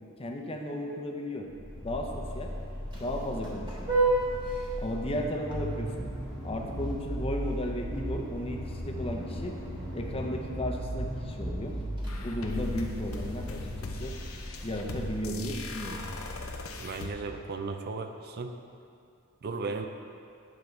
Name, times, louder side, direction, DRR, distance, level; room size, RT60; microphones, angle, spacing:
voice 1, 0.2-1.5 1.8-2.5 3.0-3.9 4.8-6.1 6.4-9.5 9.9-11.7 12.2-14.2 14.6-16.0, left 1 dB, 25° left, 1 dB, 0.7 m, -34 dB
Vehicle horn car horn honking, 1.5-16.9, right 1 dB, 25° right, 1.4 m, -34 dB
sound 1, 12.1-17.1, left 3 dB, 70° left, 0.6 m, -40 dB
voice 2, 16.8-18.5 19.4-19.9, right 4 dB, 50° right, 6 dB, 0.5 m, -35 dB
9.4 x 5.9 x 3.3 m, 2.5 s
head